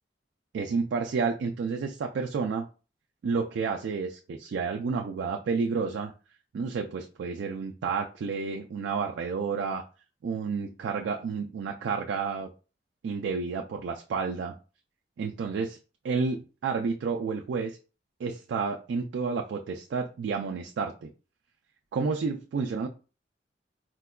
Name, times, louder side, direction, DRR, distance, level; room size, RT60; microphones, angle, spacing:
voice 1, 0.5-2.7 3.2-6.1 6.5-9.8 10.2-12.5 13.0-14.5 15.2-15.8 16.0-17.8 18.2-21.1 21.9-22.9, right 5 dB, 75° right, 3 dB, 0.3 m, -30 dB
4.4 x 2.1 x 2.3 m, 0.34 s
head